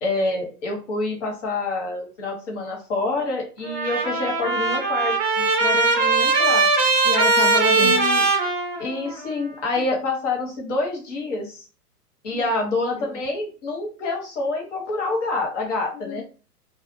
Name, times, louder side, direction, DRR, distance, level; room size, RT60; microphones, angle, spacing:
voice 1, 0.0-6.7 7.8-8.2 8.8-11.6 12.2-16.2, left 2 dB, 50° left, 1 dB, 1.1 m, -27 dB
Trumpet, 3.7-9.3, right 3 dB, 20° right, 0.5 m, -20 dB
voice 2, 7.0-8.0 9.8-9.9 12.3-12.4 13.0-13.2 16.0-16.2, left 3 dB, 85° left, 0 dB, 0.6 m, -29 dB
2.4 x 2.3 x 2.5 m, 0.36 s
figure-of-eight pair, 105°, 47 cm